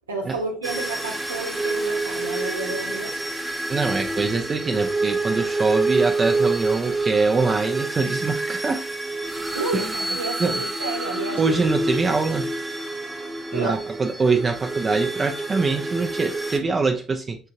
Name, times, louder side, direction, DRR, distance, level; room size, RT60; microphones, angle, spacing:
voice 1, 0.1-3.1 9.5-11.6 12.0-12.1 13.5-13.8, right 3 dB, 80° right, 2 dB, 0.9 m, -30 dB
sound 1, 0.6-16.6, right 2 dB, 10° right, 1.0 m, -27 dB
voice 2, 3.7-8.8 9.7-9.9 10.4-10.6 11.4-12.5 13.5-17.4, right 4 dB, 30° right, 4 dB, 0.5 m, -24 dB
5.5 x 3.6 x 2.7 m, 0.35 s
figure-of-eight pair, 55°, 0 cm